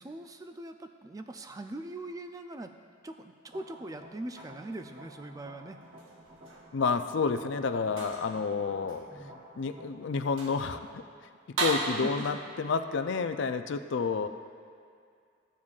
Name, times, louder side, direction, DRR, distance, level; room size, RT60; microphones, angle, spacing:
voice 1, 0.0-2.7 3.0-5.8 9.1-9.4 12.0-12.3, right 2 dB, 15° right, 7 dB, 0.3 m, -41 dB
sound 1, 3.5-10.8, right 1 dB, 40° right, 1.1 m, -52 dB
sound 2, 5.8-6.7 7.9-8.4 8.9-9.0 9.6-9.7 10.2-10.7 11.6-12.3, right 2 dB, 65° right, 1.0 m, -35 dB
voice 2, 6.7-9.0 9.6-11.0 11.5-14.3, left 5 dB, 60° left, 9 dB, 0.4 m, -30 dB
15.0 x 7.3 x 2.4 m, 2.3 s
head